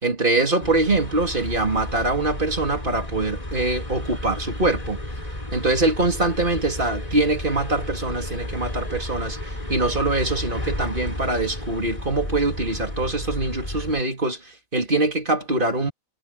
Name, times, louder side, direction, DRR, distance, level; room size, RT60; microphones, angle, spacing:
voice 1, 0.0-5.0 5.5-9.4 9.7-14.4 14.7-15.9, right 2 dB, 40° right, 3.9 m, -23 dB
sound 1, 0.6-14.0, left 1 dB, 30° left, 4.6 m, -32 dB
omnidirectional pair, 1.4 m